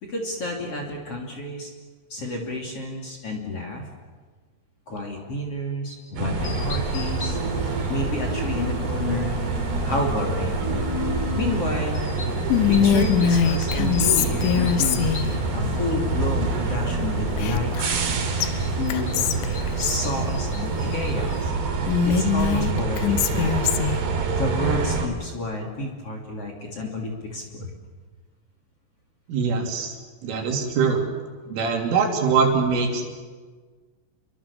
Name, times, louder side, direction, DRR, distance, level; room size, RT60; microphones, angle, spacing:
voice 1, 0.0-1.7 2.1-3.9 4.9-7.4 7.9-9.4 9.8-10.6 11.3-12.0 12.7-15.1 15.5-18.1 18.7-19.1 19.8-21.5 22.1-23.6 24.3-27.7, left 1 dB, 35° left, 0 dB, 3.3 m, -30 dB
sound 1, 6.2-25.1, right 4 dB, 60° right, 4.4 m, -26 dB
sound 2, 6.4-21.5, left 3 dB, 60° left, 1.1 m, -36 dB
Whispering, 12.5-15.3 17.4-18.1 18.4-18.5 18.9-20.0 21.9-24.0, left 8 dB, 80° left, 3.4 m, -22 dB
voice 2, 29.3-29.9 30.2-31.0 31.5-33.0, right 5 dB, 80° right, 2 dB, 5.6 m, -22 dB
29.5 x 23.0 x 7.2 m, 1.4 s
omnidirectional pair, 5.7 m